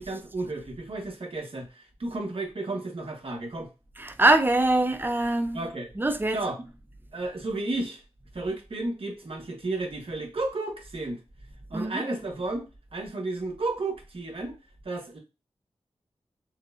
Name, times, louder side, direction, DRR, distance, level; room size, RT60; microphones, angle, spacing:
voice 1, 0.0-3.7 5.5-5.9 6.3-6.6 7.1-8.0 8.3-11.2 11.7-12.7 12.9-14.6 14.8-15.2, right 2 dB, 60° right, 1.3 m, -32 dB
voice 2, 4.0-5.6 6.0-6.4 11.7-12.0, right 2 dB, 20° right, 0.6 m, -23 dB
6.2 x 2.2 x 2.5 m
wide cardioid pair, 80°, 11 cm